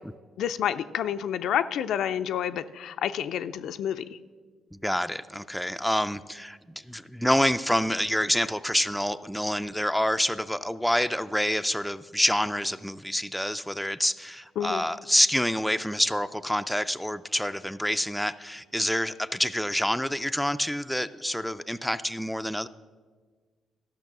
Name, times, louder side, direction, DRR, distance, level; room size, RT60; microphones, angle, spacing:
voice 1, 0.4-4.2 14.6-14.8, left 9 dB, 75° left, 11 dB, 0.4 m, -29 dB
voice 2, 4.7-6.6 6.9-22.7, equal, ahead, 11 dB, 0.3 m, -27 dB
13.0 x 6.1 x 6.0 m, 1.5 s
cardioid pair, 90°, 0 cm